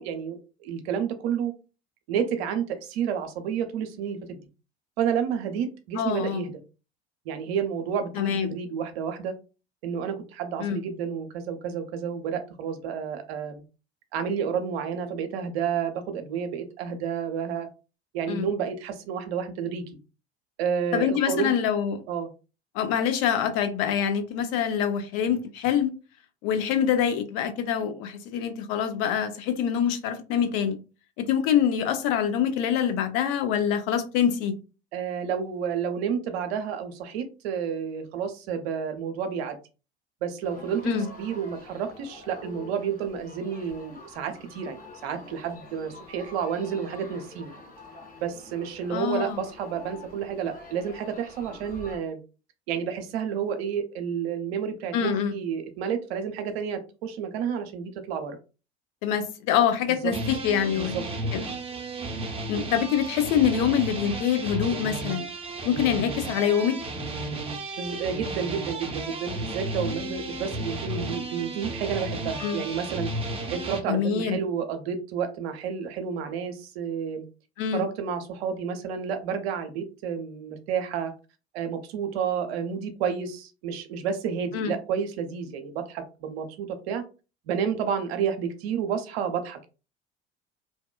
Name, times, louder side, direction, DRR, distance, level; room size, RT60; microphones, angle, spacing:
voice 1, 0.0-1.5 2.1-4.4 5.0-6.5 7.3-9.3 9.8-13.5 14.1-17.7 18.1-19.8 20.6-21.6 22.1-22.3 34.9-39.6 40.2-40.9 41.2-47.5 48.2-52.2 52.7-58.4 60.0-60.1 60.7-61.0 67.8-73.1 73.5-77.2 77.7-81.1 81.5-87.0 87.5-89.7, right 7 dB, 70° right, 0.6 m, -30 dB
voice 2, 5.9-6.5 8.1-8.5 10.6-10.8 18.3-18.5 20.9-22.0 22.7-25.9 26.4-30.8 31.2-34.5 40.8-41.1 48.9-49.4 54.9-55.3 59.0-60.9 61.3-61.5 62.5-65.3 65.6-66.8 72.4-72.6 73.9-74.4 77.6-77.8 84.5-84.7, left 8 dB, 55° left, 0.6 m, -25 dB
sound 1, 40.4-52.0, left 2 dB, 25° left, 1.4 m, -47 dB
sound 2, 60.1-73.8, right 2 dB, 15° right, 0.7 m, -33 dB
2.7 x 2.2 x 2.2 m
hypercardioid pair, 70°, 33 cm